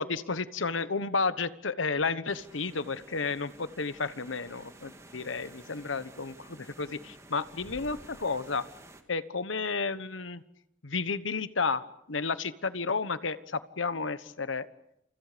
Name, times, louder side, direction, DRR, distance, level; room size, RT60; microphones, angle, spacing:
voice 1, 0.0-8.6 9.1-10.4 10.8-14.7, left 4 dB, 90° left, 13 dB, 1.2 m, -32 dB
sound 1, 2.3-9.0, right 1 dB, 15° right, 2.0 m, -52 dB
29.5 x 29.0 x 5.2 m, 0.76 s
head